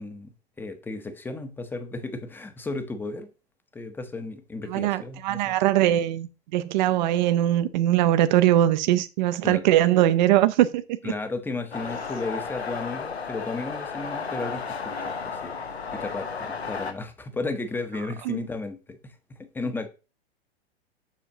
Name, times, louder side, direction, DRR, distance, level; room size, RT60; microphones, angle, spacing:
voice 1, 0.0-3.3 3.7-5.5 9.4-9.6 11.0-15.5 15.9-19.9, left 3 dB, 5° left, 0.7 m, -34 dB
voice 2, 4.7-11.1 18.3-18.4, right 13 dB, 45° right, 0.6 m, -21 dB
sound 1, 11.7-16.9, left 5 dB, 85° left, 1.1 m, -33 dB
7.3 x 6.8 x 2.7 m
figure-of-eight pair, 100°, 32 cm